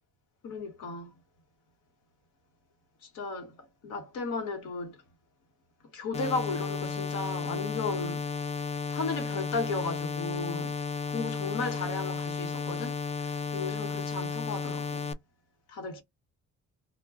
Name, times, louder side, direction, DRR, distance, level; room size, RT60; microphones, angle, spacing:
voice 1, 0.4-1.1 3.1-3.6 3.8-5.0 5.9-8.2 8.9-10.8 11.1-15.1 15.7-16.0, left 3 dB, 85° left, 1.1 m, -35 dB
sound 1, 6.1-15.1, left 5 dB, 20° left, 0.4 m, -33 dB
2.2 x 2.1 x 3.5 m
cardioid pair, 90°, 30 cm